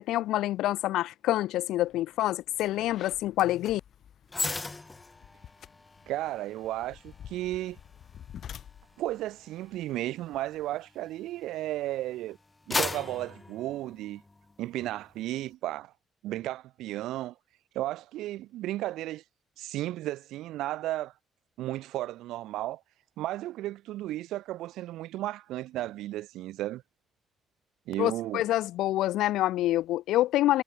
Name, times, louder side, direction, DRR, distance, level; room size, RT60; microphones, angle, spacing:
voice 1, 0.0-3.8 28.0-30.6, left 15 dB, 90° left, 0.4 m, -27 dB
sound 1, 1.9-2.0 2.4-10.7, left 9 dB, 65° left, 1.0 m, -50 dB
sound 2, 4.3-11.7 12.2-14.5 14.9-15.1, left 3 dB, 20° left, 0.4 m, -38 dB
voice 2, 6.1-7.8 9.0-12.4 12.7-14.2 14.6-15.9 16.2-17.3 17.7-19.2 19.6-21.1 21.6-22.8 23.2-26.8 27.9-28.4, right 15 dB, 90° right, 1.0 m, -34 dB
cardioid pair, 90°, 0 cm